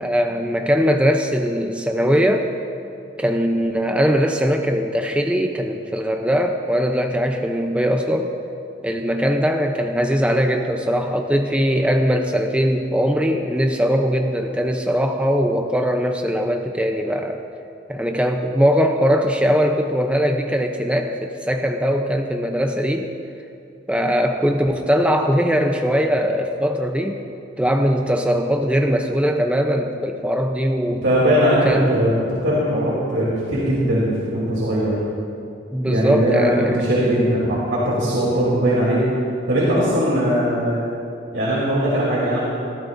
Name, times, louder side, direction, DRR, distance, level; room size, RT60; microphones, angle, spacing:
voice 1, 0.0-2.5 3.2-8.3 8.8-17.4 17.9-23.1 23.9-27.2 27.6-31.0 31.5-32.1 35.7-36.9, equal, 5° right, 3 dB, 0.6 m, -20 dB
voice 2, 30.9-35.0 35.8-39.1 39.5-40.9 41.3-42.4, equal, 85° right, -7 dB, 3.0 m, -20 dB
21.0 x 13.0 x 2.6 m, 2.6 s
head